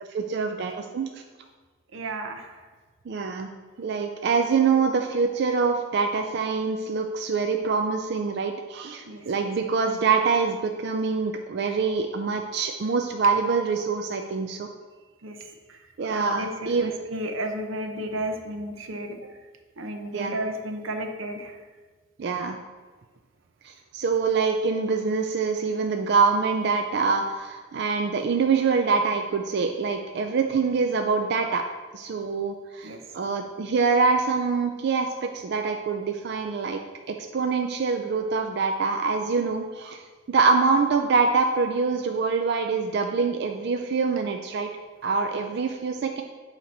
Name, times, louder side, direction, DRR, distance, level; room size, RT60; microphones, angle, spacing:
voice 1, 0.1-1.1 3.1-3.5 3.8-14.7 16.0-16.9 20.1-20.3 22.2-22.6 23.6-31.6 31.9-36.8 37.1-40.0 40.3-44.7 45.0-46.2, right 4 dB, 55° right, 4 dB, 0.4 m, -25 dB
voice 2, 1.9-2.6 9.1-9.5 15.2-15.4 15.7-15.8 16.1-19.2 19.8-21.6 32.8-33.0 45.3-45.4, right 1 dB, 90° right, 5 dB, 0.8 m, -33 dB
8.4 x 2.9 x 5.3 m, 1.4 s
head